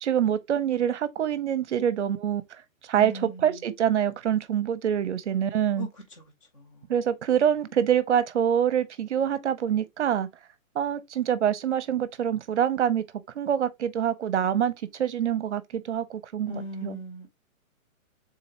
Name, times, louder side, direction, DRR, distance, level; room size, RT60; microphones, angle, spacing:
voice 1, 0.0-2.4 2.8-5.9 6.9-10.3 10.7-13.0 13.3-17.0, right 9 dB, 55° right, 0.7 m, -25 dB
voice 2, 3.0-3.7 5.8-5.9 6.2-6.3 6.5-6.9 16.4-17.3, equal, 25° left, 0.9 m, -39 dB
3.8 x 2.8 x 4.2 m
hypercardioid pair, 175°, 41 cm